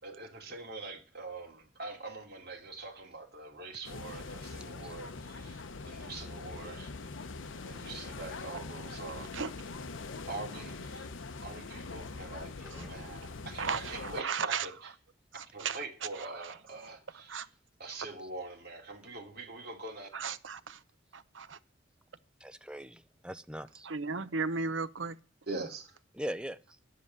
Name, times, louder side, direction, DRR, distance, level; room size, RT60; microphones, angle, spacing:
voice 1, 0.0-6.9 7.6-9.3 10.3-11.1 11.4-14.9 15.5-17.4 17.8-20.1 25.5-26.0, right 3 dB, 55° right, 2.9 m, -44 dB
sound 1, 3.8-14.2, left 3 dB, 90° left, 0.8 m, -43 dB
voice 2, 13.6-14.7 15.3-15.8 16.2-16.5 17.3-17.5 20.1-20.8 21.1-21.6 23.8-25.2, right 5 dB, 75° right, 0.8 m, -35 dB
voice 3, 22.4-23.9 26.1-26.6, equal, 5° right, 0.5 m, -41 dB
10.0 x 7.6 x 9.4 m
head